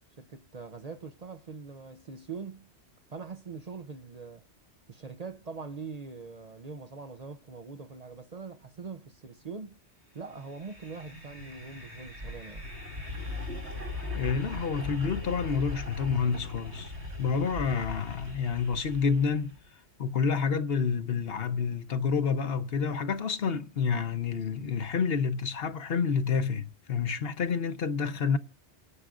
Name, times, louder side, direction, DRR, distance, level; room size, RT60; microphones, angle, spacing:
voice 1, 0.2-2.7 3.1-4.4 4.9-9.8 10.1-12.6, right 4 dB, 40° right, 0.7 m, -42 dB
sound 1, 10.4-19.6, left 2 dB, 70° right, 2.9 m, -39 dB
voice 2, 14.1-16.9 17.2-19.5 20.0-28.4, left 6 dB, 60° left, 1.1 m, -29 dB
28.5 x 9.7 x 2.5 m
omnidirectional pair, 1.2 m